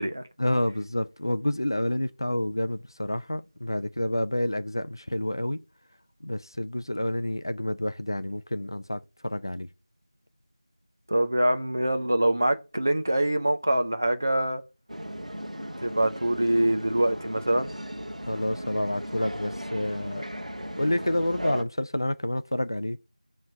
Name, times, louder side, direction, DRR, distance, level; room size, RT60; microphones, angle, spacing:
voice 1, 0.4-5.6 6.2-9.7 18.3-20.3 20.8-23.0, left 1 dB, 35° left, 0.4 m, -29 dB
voice 2, 11.1-14.6 15.8-17.7, right 1 dB, 25° right, 0.4 m, -24 dB
sound 1, 14.9-21.6, equal, 80° right, 1.1 m, -36 dB
8.4 x 3.2 x 6.4 m
figure-of-eight pair, 175°, 4 cm